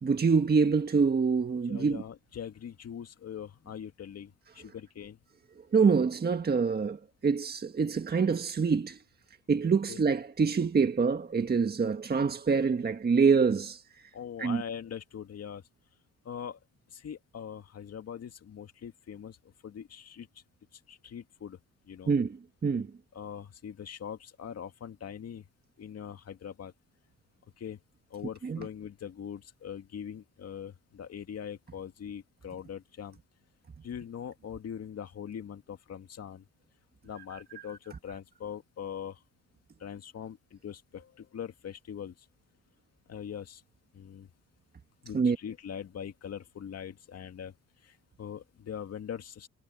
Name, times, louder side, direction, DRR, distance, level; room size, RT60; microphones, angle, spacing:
voice 1, 0.0-2.0 5.6-9.0 9.5-13.8 14.4-14.6 22.1-22.9 28.4-28.7 37.7-37.8 45.1-45.4, right 5 dB, 30° right, 1.6 m, -26 dB
voice 2, 1.7-4.3 4.6-5.2 9.9-10.0 14.1-15.6 16.3-16.6 16.9-19.4 19.6-20.3 20.9-21.6 21.9-22.1 23.1-25.4 25.8-26.7 27.6-27.8 28.1-33.2 33.8-36.4 37.0-37.8 38.0-39.2 39.8-42.1 43.1-43.6 43.9-44.3 45.0-47.5 48.2-49.5, left 8 dB, 55° left, 2.2 m, -42 dB
cardioid pair, 90°, 30 cm